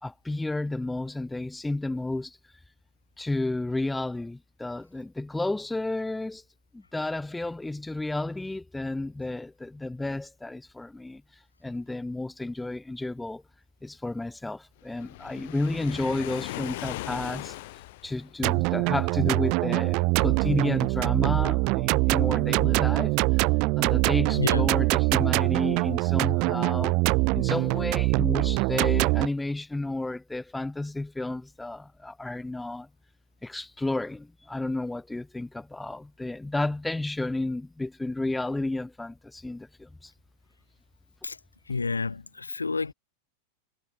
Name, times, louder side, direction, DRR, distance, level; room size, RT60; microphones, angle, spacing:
voice 1, 0.0-2.4 3.2-6.4 6.7-11.2 11.6-13.4 13.8-17.6 18.0-23.4 23.8-27.0 27.3-32.9 33.4-40.1, left 2 dB, 5° left, 2.6 m, -32 dB
Waves surf, 14.9-18.4, left 19 dB, 50° left, 2.4 m, -38 dB
sound 1, 18.4-29.3, right 29 dB, 45° right, 0.9 m, -24 dB
voice 2, 41.7-42.9, left 4 dB, 80° left, 0.5 m, -29 dB
figure-of-eight pair, 90°, 0 cm